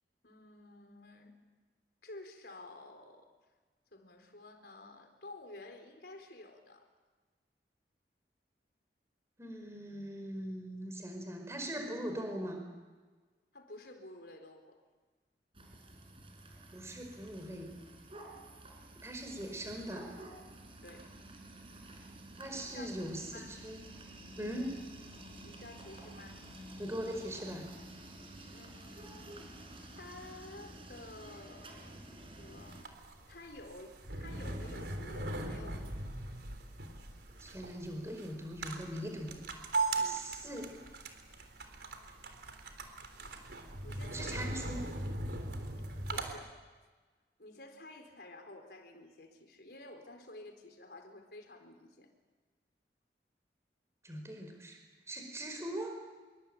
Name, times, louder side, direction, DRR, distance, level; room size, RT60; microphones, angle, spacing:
voice 1, 0.2-1.3 2.0-3.3 3.9-6.9 13.5-14.8 20.8-21.1 21.7-21.9 22.5-22.9 23.3-23.6 25.4-26.4 28.5-29.5 30.0-32.9 33.3-36.0 40.0-40.2 43.6-45.0 46.1-46.6 47.4-52.1, left 2 dB, 65° left, 5 dB, 4.3 m, -52 dB
voice 2, 9.4-12.6 16.7-17.7 19.0-20.1 22.4-23.8 24.4-24.8 26.8-27.7 37.4-39.4 40.0-40.7 44.1-44.8 54.0-54.8 55.1-56.0, right 1 dB, 15° right, 3 dB, 4.8 m, -41 dB
sound 1, 15.5-32.8, right 1 dB, 30° right, 5.1 m, -51 dB
sound 2, 32.6-46.3, right 3 dB, 75° right, 3.7 m, -39 dB
26.5 x 24.0 x 8.9 m, 1.3 s
head